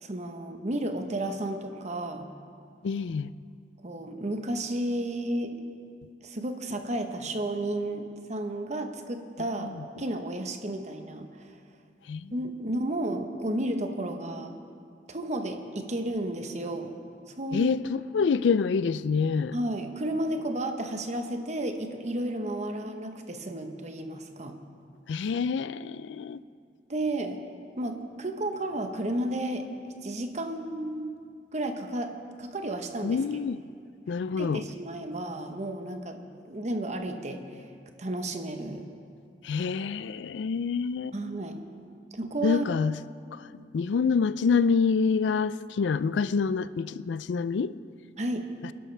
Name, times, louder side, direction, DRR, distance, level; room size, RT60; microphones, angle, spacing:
voice 1, 0.0-2.3 3.8-5.7 6.2-9.7 10.0-11.5 12.3-14.6 15.1-16.9 17.3-17.8 19.5-24.6 26.9-27.4 27.8-31.1 31.5-32.1 32.4-33.2 34.4-36.2 36.4-37.6 38.0-38.9 41.1-41.6 42.2-42.7 48.2-48.4, right 1 dB, 40° right, 5 dB, 1.0 m, -32 dB
voice 2, 2.8-3.3 9.6-9.7 12.1-12.3 17.5-19.5 25.1-26.4 33.0-33.6 34.1-34.6 39.4-41.1 42.4-42.9 43.3-43.4 43.7-47.7, left 5 dB, 85° left, 16 dB, 0.4 m, -26 dB
26.0 x 11.0 x 3.4 m, 2.3 s
head